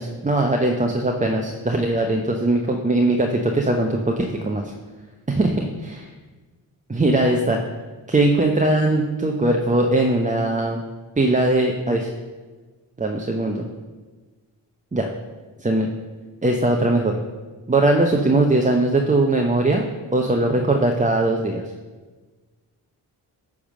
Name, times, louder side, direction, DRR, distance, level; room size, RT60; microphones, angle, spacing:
voice 1, 0.0-4.7 5.3-6.1 6.9-7.6 8.1-10.8 11.2-12.1 13.0-13.6 14.9-15.1 15.6-15.9 16.4-17.2 17.7-19.9 20.1-21.6, right 2 dB, 15° right, 2 dB, 0.8 m, -20 dB
9.6 x 3.7 x 6.3 m, 1.3 s
hypercardioid pair, 40°, 46 cm